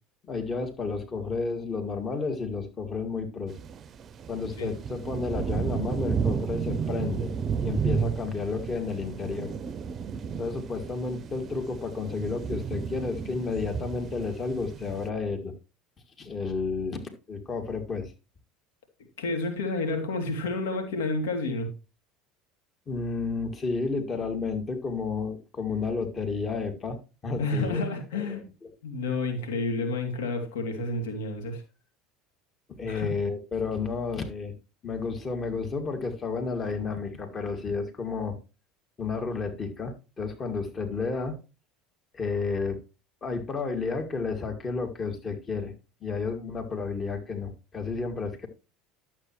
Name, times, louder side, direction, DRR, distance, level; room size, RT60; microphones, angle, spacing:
voice 1, 0.3-3.5 4.3-7.3 7.6-9.5 10.4-15.5 16.2-18.1 22.9-27.0 27.2-27.9 28.1-28.4 32.7-34.5 34.8-38.4 39.0-41.4 42.1-42.8 43.2-45.7 46.0-48.5, left 4 dB, 35° left, 2.2 m, -31 dB
sound 1, 3.5-15.1, right 7 dB, 40° right, 0.6 m, -32 dB
voice 2, 19.2-21.7 27.4-28.4 28.8-31.6 32.9-33.1, left 3 dB, 80° left, 2.7 m, -30 dB
12.0 x 7.5 x 3.1 m
hypercardioid pair, 75°, 0 cm